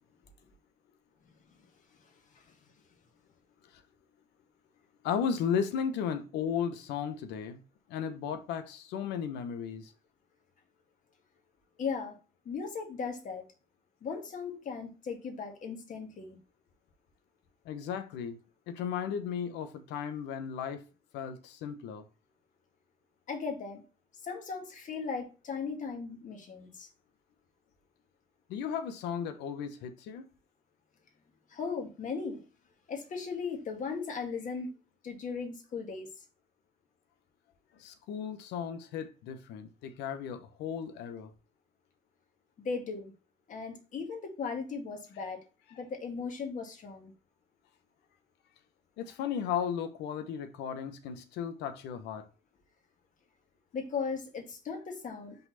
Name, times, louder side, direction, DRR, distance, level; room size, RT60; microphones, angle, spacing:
voice 1, 5.0-7.6 7.9-9.9 17.6-18.4 18.7-20.8 21.1-22.0 28.5-30.3 37.8-41.3 45.7-45.8 49.0-52.3, left 7 dB, 90° left, 1.0 m, -35 dB
voice 2, 11.8-12.2 12.5-13.4 14.0-16.4 23.3-23.8 24.2-26.9 31.5-32.4 32.9-34.7 35.0-36.1 42.6-43.1 43.5-45.4 45.7-47.1 53.7-55.5, left 5 dB, 50° left, 2.0 m, -37 dB
5.5 x 4.1 x 4.1 m
cardioid pair, 110°, 17 cm